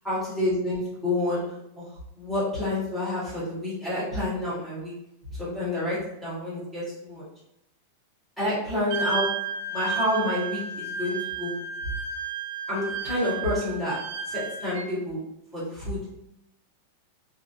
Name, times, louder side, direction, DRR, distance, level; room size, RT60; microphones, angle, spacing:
voice 1, 0.0-1.4 1.8-1.9 2.2-4.9 5.4-7.2 8.4-9.3 9.7-11.6 12.7-14.0 14.3-15.2 15.5-16.1, left 1 dB, 5° right, -12 dB, 1.4 m, -28 dB
Wind instrument woodwind instrument, 8.9-14.9, right 5 dB, 50° right, 0.5 m, -32 dB
3.2 x 2.6 x 2.6 m, 0.84 s
supercardioid pair, 175°, 0 cm